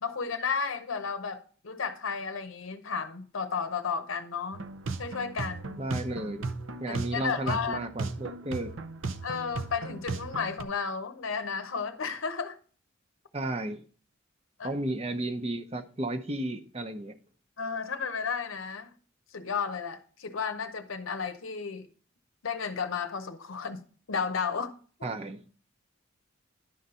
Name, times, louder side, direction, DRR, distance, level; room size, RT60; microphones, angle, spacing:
voice 1, 0.0-4.6 5.0-5.8 6.9-7.8 9.2-12.6 14.6-14.7 17.6-18.9 19.3-21.9 22.4-24.7 25.0-25.1, left 5 dB, 90° left, 0.7 m, -33 dB
sound 1, 4.5-10.6, right 3 dB, 80° right, 0.6 m, -36 dB
voice 2, 5.8-6.5 6.8-8.7 13.3-13.8 14.6-17.2 25.0-25.4, right 1 dB, 30° right, 0.8 m, -33 dB
11.0 x 4.0 x 5.5 m
head